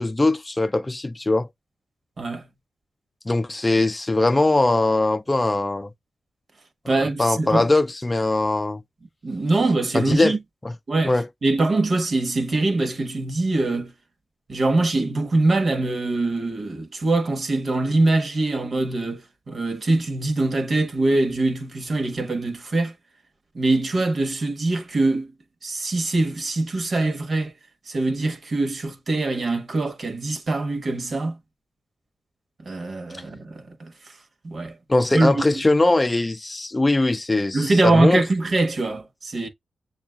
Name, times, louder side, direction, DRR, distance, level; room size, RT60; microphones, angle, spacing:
voice 1, 0.0-1.5 3.3-5.9 7.2-8.8 9.9-10.3 10.6-10.7 11.1-11.3 34.9-38.2, left 2 dB, 20° left, 0.5 m, -21 dB
voice 2, 6.9-7.7 9.2-10.4 10.9-13.9 14.5-22.9 23.5-25.3 25.6-27.5 27.9-31.4 32.6-34.1 34.4-34.7 35.1-35.6 37.5-39.5, right 2 dB, 50° right, 1.1 m, -23 dB
7.0 x 2.4 x 2.2 m
cardioid pair, 70°, 0 cm